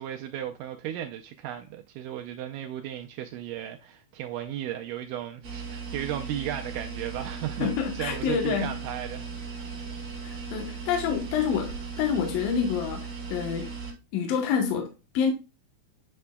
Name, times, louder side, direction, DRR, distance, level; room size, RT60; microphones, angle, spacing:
voice 1, 0.0-9.6, right 11 dB, 85° right, 1.8 m, -35 dB
sound 1, 5.4-13.9, right 5 dB, 45° right, 1.7 m, -37 dB
voice 2, 7.6-8.8 10.2-13.8 14.1-15.3, left 7 dB, 75° left, 2.6 m, -28 dB
8.4 x 5.8 x 2.2 m
omnidirectional pair, 4.3 m